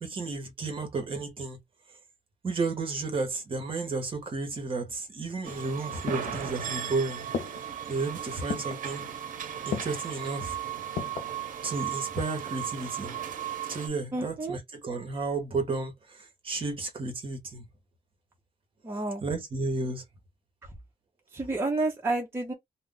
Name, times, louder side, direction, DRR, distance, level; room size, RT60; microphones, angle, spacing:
voice 1, 0.0-1.6 2.4-7.2 7.9-9.1 9.7-10.6 11.6-13.1 13.7-17.6 19.2-20.0, right 3 dB, 40° right, 0.9 m, -32 dB
sound 1, 5.4-13.9, right 9 dB, 75° right, 0.6 m, -36 dB
sound 2, 5.5-6.9 7.3-7.9 8.5-8.9 9.7-10.2 11.0-11.4 11.9-12.5 12.8-12.9, left 6 dB, 70° left, 0.5 m, -36 dB
voice 2, 14.1-14.6 18.8-19.2 20.6-20.7 21.3-22.5, right 2 dB, 15° right, 0.7 m, -30 dB
2.3 x 2.0 x 3.6 m
wide cardioid pair, 160°, 14 cm